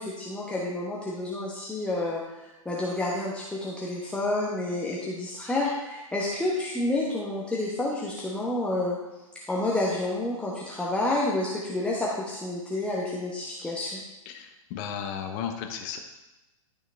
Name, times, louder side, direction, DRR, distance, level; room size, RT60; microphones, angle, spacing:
voice 1, 0.0-2.2 2.6-9.0 9.5-14.0, left 2 dB, 5° left, -5 dB, 1.1 m, -29 dB
voice 2, 14.3-16.0, left 8 dB, 35° left, 5 dB, 1.1 m, -34 dB
12.0 x 6.2 x 3.4 m, 1.0 s
figure-of-eight pair, 110°, 18 cm